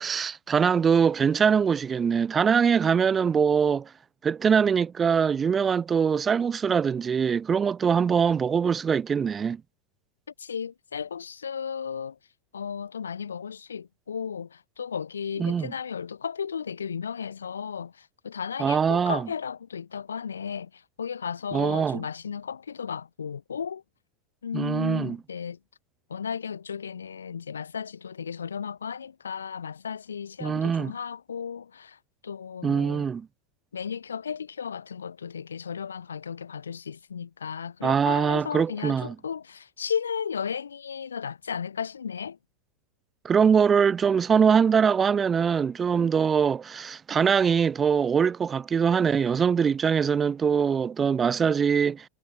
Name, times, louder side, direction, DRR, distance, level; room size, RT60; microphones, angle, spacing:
voice 1, 0.0-3.9 4.2-9.6 15.4-15.7 18.6-19.3 21.5-22.0 24.5-25.2 30.4-30.9 32.6-33.3 37.8-39.1 43.2-52.1, right 6 dB, 25° right, 3.8 m, -23 dB
voice 2, 10.4-12.2 12.5-23.8 24.4-25.6 26.1-32.0 32.2-33.1 33.7-42.4, left 7 dB, 90° left, 3.3 m, -34 dB
hypercardioid pair, 95°, 0 cm